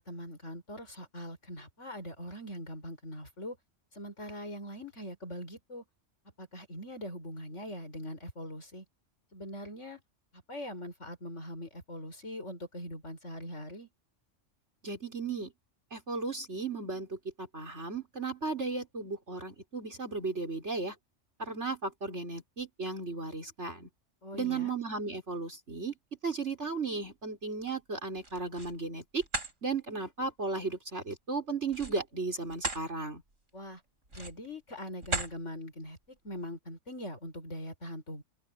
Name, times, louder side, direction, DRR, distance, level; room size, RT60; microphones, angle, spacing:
voice 1, 0.0-3.6 4.0-5.8 6.4-8.8 9.3-10.0 10.5-13.9 24.2-24.7 33.5-33.8 34.1-38.2, equal, 70° left, 7.1 m, -42 dB
voice 2, 14.8-15.5 15.9-20.9 21.4-23.9 24.3-25.9 26.2-29.2 29.6-33.2, right 4 dB, 65° right, 5.1 m, -35 dB
sound 1, 28.1-28.8 29.2-29.5 31.7-32.9 33.3-33.5 34.1-34.5 35.0-35.4, right 2 dB, 90° right, 6.2 m, -36 dB
open air
omnidirectional pair, 1.3 m